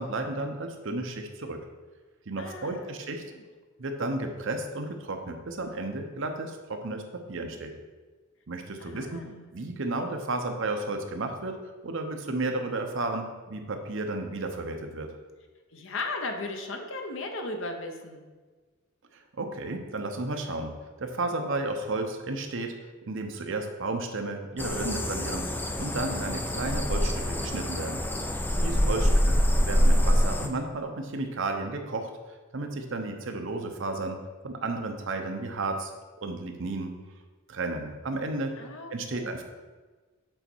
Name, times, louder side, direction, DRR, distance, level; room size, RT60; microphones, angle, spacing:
voice 1, 0.0-1.6 2.3-3.2 3.8-7.7 8.5-9.2 9.5-11.6 11.8-15.1 19.3-22.7 23.1-25.5 25.8-28.0 28.6-29.4 29.7-32.1 32.5-35.9 36.2-37.0 37.5-38.5 38.9-39.4, right 2 dB, 65° right, 5 dB, 0.8 m, -33 dB
voice 2, 2.4-2.9 3.3-3.4 8.8-9.4 15.7-18.2 28.6-29.2 38.6-39.4, left 2 dB, 65° left, 4 dB, 0.9 m, -37 dB
sound 1, 24.6-30.5, equal, 10° left, 0.5 m, -25 dB
7.7 x 4.1 x 4.5 m, 1.3 s
head